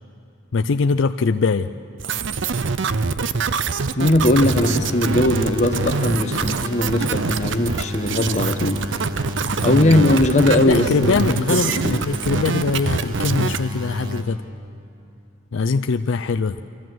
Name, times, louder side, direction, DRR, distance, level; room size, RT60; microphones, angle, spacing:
voice 1, 0.5-1.7 9.7-10.0 10.7-14.4 15.5-16.6, left 4 dB, 65° left, 8 dB, 0.4 m, -22 dB
sound 1, 2.0-13.6, right 4 dB, 60° right, 0.6 m, -24 dB
voice 2, 4.0-8.8 9.6-12.1, left 1 dB, 35° left, 7 dB, 0.9 m, -19 dB
sound 2, 4.2-14.2, left 1 dB, 90° right, 1.6 m, -32 dB
25.0 x 14.0 x 7.7 m, 2.8 s
head